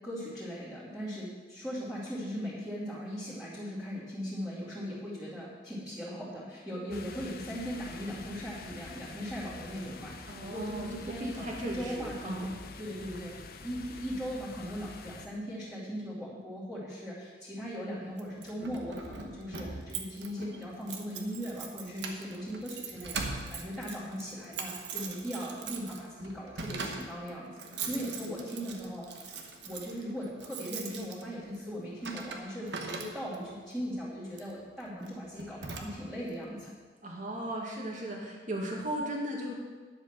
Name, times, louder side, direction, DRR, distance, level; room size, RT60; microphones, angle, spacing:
voice 1, 0.0-13.3 13.6-27.6 27.9-29.3 29.6-36.7, equal, 5° right, -11 dB, 2.6 m, -39 dB
sound 1, 6.9-15.3, left 4 dB, 55° left, 0.7 m, -46 dB
voice 2, 10.3-12.5 27.9-28.7 37.0-39.5, right 1 dB, 45° right, -1 dB, 2.2 m, -37 dB
Keys jangling, 18.2-33.5 34.3-34.6 35.0-35.1 35.4-36.3, right 4 dB, 80° right, 1.2 m, -41 dB
10.5 x 7.9 x 5.9 m, 1.5 s
head